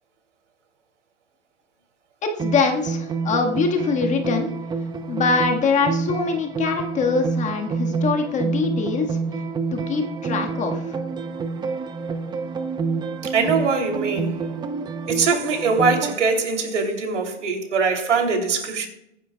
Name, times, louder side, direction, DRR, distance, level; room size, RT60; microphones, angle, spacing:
voice 1, 2.2-4.5 5.1-9.2 9.7-11.0, left 4 dB, 20° left, 1.7 m, -23 dB
sound 1, 2.4-16.1, right 4 dB, 10° right, 0.7 m, -28 dB
voice 2, 13.2-14.4 15.1-18.9, right 4 dB, 85° right, 3.1 m, -22 dB
22.5 x 10.0 x 2.3 m
hypercardioid pair, 130°, 35 cm